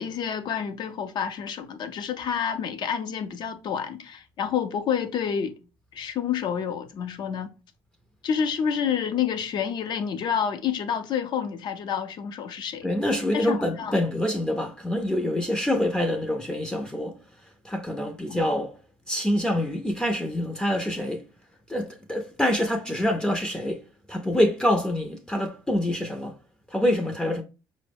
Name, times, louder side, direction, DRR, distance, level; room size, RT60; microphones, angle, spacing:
voice 1, 0.0-5.5 5.9-7.5 8.2-12.9 13.3-13.9 18.3-18.4, left 7 dB, 55° left, 0.6 m, -28 dB
voice 2, 12.8-17.2 17.6-18.8 19.1-21.3 21.7-23.8 24.1-26.4 26.7-27.4, left 1 dB, 10° left, 0.5 m, -26 dB
4.4 x 2.0 x 3.3 m
cardioid pair, 95°, 9 cm